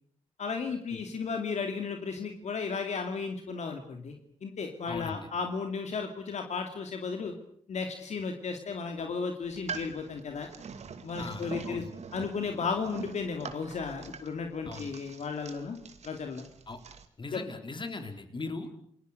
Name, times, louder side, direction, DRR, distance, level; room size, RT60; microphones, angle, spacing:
voice 1, 0.4-7.3 7.7-10.5 11.0-15.8 16.0-16.4 17.3-17.4, left 5 dB, 70° left, 4 dB, 2.6 m, -34 dB
voice 2, 4.9-5.3 11.2-11.9 14.7-14.9 16.7-16.8 17.2-18.7, left 3 dB, 40° left, 7 dB, 4.2 m, -39 dB
sound 1, 9.4-17.1, right 5 dB, 65° right, 2.5 m, -44 dB
29.5 x 20.5 x 6.7 m, 0.63 s
cardioid pair, 70°, 12 cm